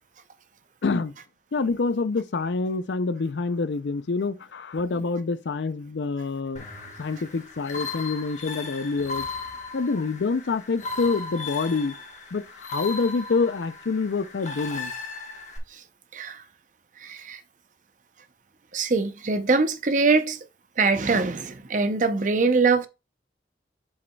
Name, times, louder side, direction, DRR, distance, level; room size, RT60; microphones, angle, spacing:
voice 1, 0.8-1.1 1.5-9.3 9.7-11.9 12.3-14.9, left 4 dB, 85° left, 0.5 m, -27 dB
sound 1, 6.6-15.6, left 4 dB, 40° left, 1.3 m, -37 dB
voice 2, 16.1-16.4 17.0-17.4 18.7-20.4 20.8-22.9, right 4 dB, 45° right, 0.6 m, -23 dB
7.5 x 6.4 x 2.3 m
head